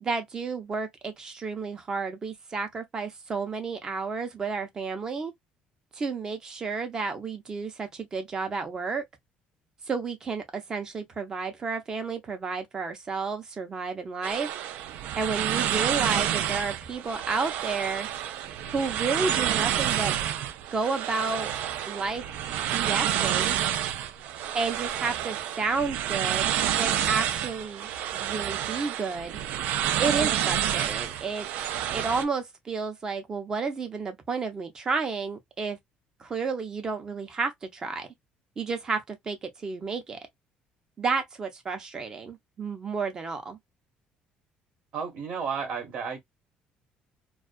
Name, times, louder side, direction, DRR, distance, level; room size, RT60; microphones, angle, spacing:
voice 1, 0.0-5.3 5.9-9.0 9.9-14.5 15.2-18.1 18.7-20.1 20.7-21.5 21.9-22.2 22.6-23.6 24.5-29.4 30.0-31.5 31.9-35.8 36.2-38.1 38.6-40.2 41.0-43.6, right 4 dB, 25° right, 0.6 m, -31 dB
sound 1, 14.2-32.2, right 10 dB, 65° right, 0.4 m, -29 dB
voice 2, 44.9-46.2, right 6 dB, 45° right, 0.9 m, -32 dB
2.3 x 2.2 x 2.4 m
cardioid pair, 165°, 3 cm